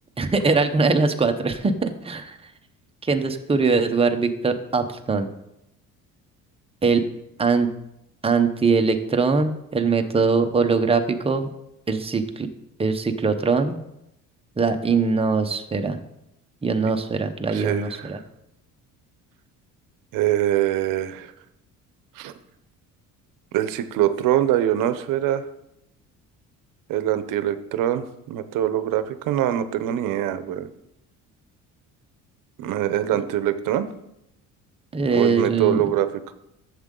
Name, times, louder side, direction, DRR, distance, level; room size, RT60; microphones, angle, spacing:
voice 1, 0.2-2.4 3.0-5.3 6.8-7.0 7.4-7.7 8.2-11.5 11.9-12.5 12.8-13.8 14.6-16.0 16.6-18.2 33.1-33.2 34.9-35.8, right 4 dB, 15° right, 6 dB, 0.8 m, -22 dB
voice 2, 17.5-18.1 20.1-21.3 22.2-22.3 23.5-25.4 26.9-30.7 32.6-33.9 35.1-36.3, right 12 dB, 75° right, 12 dB, 0.8 m, -23 dB
11.0 x 7.4 x 3.8 m, 0.83 s
cardioid pair, 125°, 33 cm